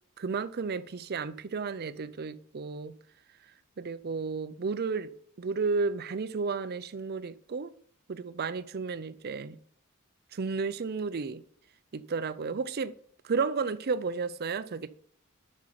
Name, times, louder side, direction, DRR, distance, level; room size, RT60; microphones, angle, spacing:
voice 1, 0.2-3.0 3.8-5.1 5.4-7.7 8.1-9.6 10.3-11.4 11.9-12.9 13.2-14.9, right 4 dB, 45° right, 0.5 m, -32 dB
7.7 x 6.3 x 5.8 m
head